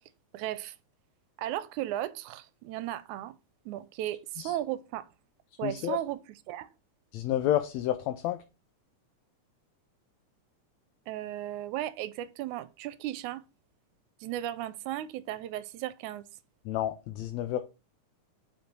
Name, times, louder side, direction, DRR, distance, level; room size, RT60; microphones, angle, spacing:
voice 1, 0.3-0.8 1.4-3.3 3.7-5.1 5.6-6.7 11.1-13.4 14.2-16.2, right 13 dB, 85° right, 2.0 m, -35 dB
voice 2, 5.6-6.0 7.1-8.4 16.6-17.6, left 12 dB, 75° left, 1.7 m, -30 dB
5.3 x 5.1 x 6.0 m
omnidirectional pair, 3.4 m